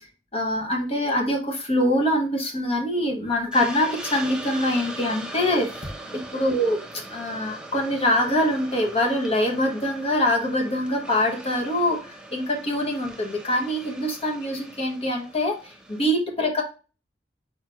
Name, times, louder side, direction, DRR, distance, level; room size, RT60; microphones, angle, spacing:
voice 1, 0.3-5.9 6.1-16.6, left 1 dB, 35° left, 2 dB, 1.1 m, -24 dB
Hiss, 3.5-16.1, right 2 dB, 5° right, 0.6 m, -40 dB
4.6 x 4.3 x 2.4 m, 0.34 s
head